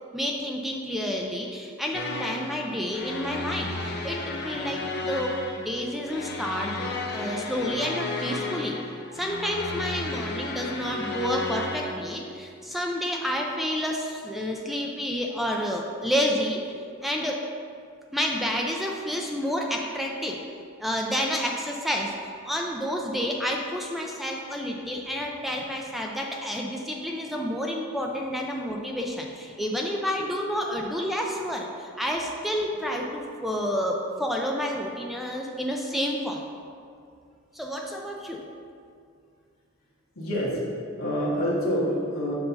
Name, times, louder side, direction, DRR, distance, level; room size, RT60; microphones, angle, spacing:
voice 1, 0.1-6.7 7.1-8.8 9.1-16.6 17.0-17.4 18.1-20.4 20.8-22.1 22.4-36.4 37.5-38.4, equal, ahead, 0 dB, 0.4 m, -29 dB
sound 1, 1.9-11.9, left 2 dB, 50° left, 0.6 m, -33 dB
voice 2, 6.8-7.3 9.0-9.7 37.9-38.0 40.1-40.6 41.0-42.3, equal, 80° left, -7 dB, 1.4 m, -29 dB
7.7 x 2.7 x 5.7 m, 2.3 s
head